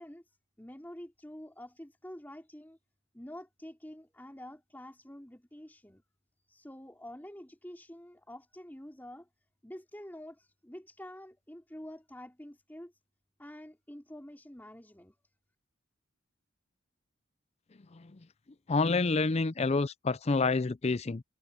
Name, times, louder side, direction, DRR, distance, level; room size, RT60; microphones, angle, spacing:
voice 1, 0.0-2.8 3.1-6.0 6.5-9.3 9.6-12.9 13.4-15.2, left 1 dB, 10° left, 3.4 m, -48 dB
voice 2, 18.7-21.2, left 3 dB, 30° left, 0.5 m, -28 dB
head